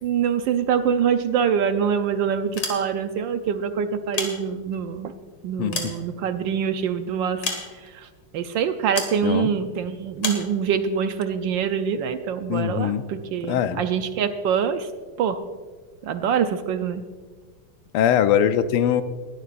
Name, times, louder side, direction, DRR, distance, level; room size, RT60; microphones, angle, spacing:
voice 1, 0.0-5.1 5.4-8.1 8.3-14.9 15.2-15.4 16.0-17.0, right 7 dB, 70° right, 9 dB, 1.2 m, -25 dB
sound 1, 2.4-3.2 3.9-4.9 5.4-6.6 7.4-8.1 9.0-9.2 10.2-10.5, left 4 dB, 70° left, 2.7 m, -31 dB
voice 2, 5.6-5.9 9.2-9.5 12.5-13.0 13.5-13.8 17.9-19.0, left 9 dB, 90° left, 11 dB, 1.6 m, -21 dB
20.0 x 12.5 x 2.5 m, 1.4 s
omnidirectional pair, 2.4 m